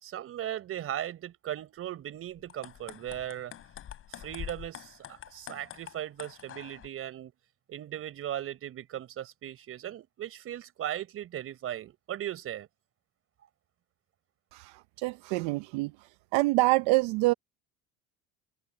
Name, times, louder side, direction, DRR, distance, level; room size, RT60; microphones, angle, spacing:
voice 1, 0.0-3.5 4.1-7.3 7.7-12.7, right 11 dB, 50° right, 4.6 m, -38 dB
sound 1, 2.4-6.9, left 10 dB, 45° left, 6.8 m, -45 dB
voice 2, 14.5-15.9 16.3-17.3, right 22 dB, 85° right, 0.9 m, -26 dB
cardioid pair, 110°, 29 cm